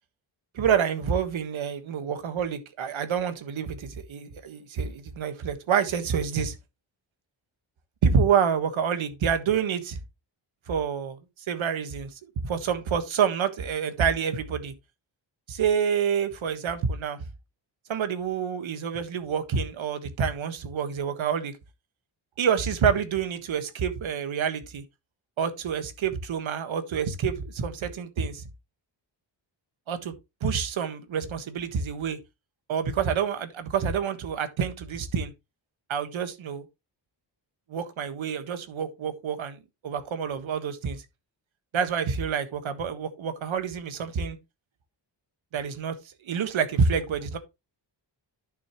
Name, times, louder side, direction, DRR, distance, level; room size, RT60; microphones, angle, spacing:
voice 1, 0.5-6.6 8.0-10.0 10.7-11.2 11.5-14.7 15.5-17.2 17.9-21.5 22.4-24.8 25.4-28.4 29.9-30.1 30.4-32.2 32.7-35.3 35.9-36.6 37.7-41.0 41.7-44.4 45.5-47.4, right 7 dB, 90° right, 1.6 m, -27 dB
11.0 x 6.4 x 3.1 m
wide cardioid pair, 180°, 46 cm